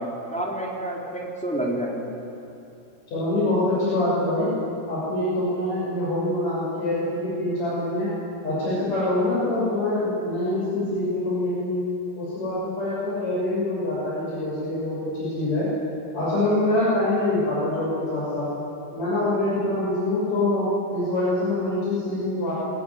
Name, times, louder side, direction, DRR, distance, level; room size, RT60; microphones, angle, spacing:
voice 1, 0.0-2.1, right 1 dB, ahead, -3 dB, 3.1 m, -29 dB
voice 2, 3.1-4.5 4.9-8.1 8.4-11.8 12.2-15.7 16.1-18.5 18.9-22.5, left 1 dB, 40° left, -9 dB, 7.7 m, -25 dB
22.5 x 18.0 x 9.7 m, 2.7 s
omnidirectional pair, 4.9 m